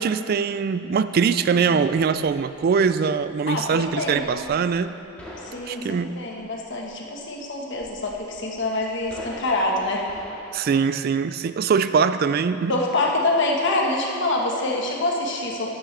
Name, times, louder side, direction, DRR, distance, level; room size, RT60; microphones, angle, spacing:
voice 1, 0.0-4.9 5.7-6.2 10.5-12.8, right 6 dB, 50° right, 12 dB, 0.3 m, -22 dB
sound 1, 1.9-10.6, left 1 dB, 5° left, 1.9 m, -46 dB
voice 2, 3.5-4.4 5.4-10.1 12.7-15.7, left 2 dB, 60° left, 0 dB, 1.4 m, -25 dB
13.5 x 10.5 x 3.4 m, 2.5 s
head